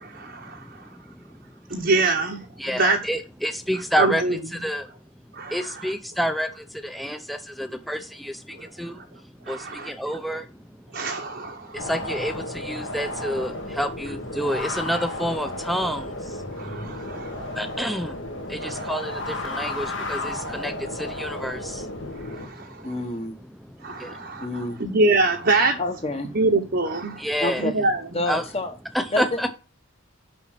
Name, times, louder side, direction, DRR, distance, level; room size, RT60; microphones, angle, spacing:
voice 1, 0.0-0.6 1.7-3.0 4.0-4.3 5.4-5.5 9.5-9.9 10.9-11.8 16.6-17.3 18.6-18.9 22.2-22.7 23.8-24.5 24.8-25.8 26.3-27.2 27.6-28.0, right 3 dB, 50° right, 1.0 m, -24 dB
voice 2, 0.5-0.9 1.1-1.2 2.0-2.1 2.6-4.9 5.5-9.0 9.5-10.5 11.7-16.9 17.5-18.2 18.5-22.0 22.4-22.8 23.1-23.4 23.7-24.2 24.5-24.7 26.9-27.7 28.3-28.5 28.9-29.5, equal, ahead, 0.7 m, -29 dB
sound 1, 11.8-22.5, left 1 dB, 65° left, 2.1 m, -33 dB
voice 3, 22.8-23.4 24.4-24.8 25.8-26.3 27.4-27.7 28.1-28.7 29.1-29.5, left 2 dB, 30° left, 1.3 m, -28 dB
7.1 x 6.2 x 5.9 m
head